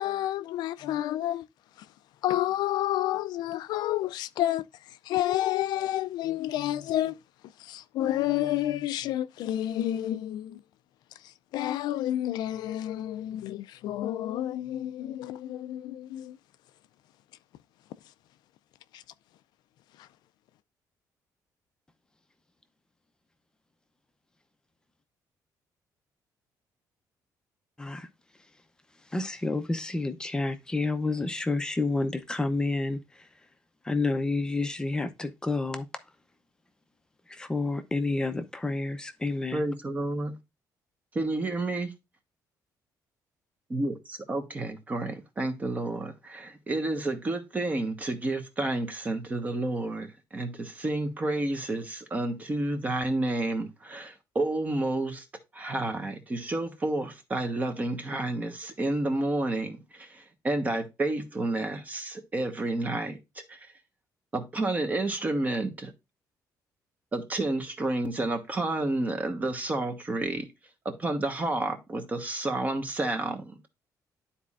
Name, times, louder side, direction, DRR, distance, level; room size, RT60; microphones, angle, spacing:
voice 1, 0.0-1.4 2.2-4.6 5.1-7.1 7.6-10.6 11.5-16.4 18.9-19.0, left 13 dB, 85° left, 0.4 m, -29 dB
voice 2, 29.1-33.3 33.8-35.9 37.3-39.6, left 3 dB, 10° left, 0.7 m, -29 dB
voice 3, 39.5-40.3 41.1-41.9 43.7-55.2 55.5-63.2 63.5-63.6 64.3-65.9 67.1-70.5 70.8-73.7, right 2 dB, 20° right, 1.2 m, -30 dB
11.5 x 4.2 x 2.4 m
cardioid pair, 160°, 7 cm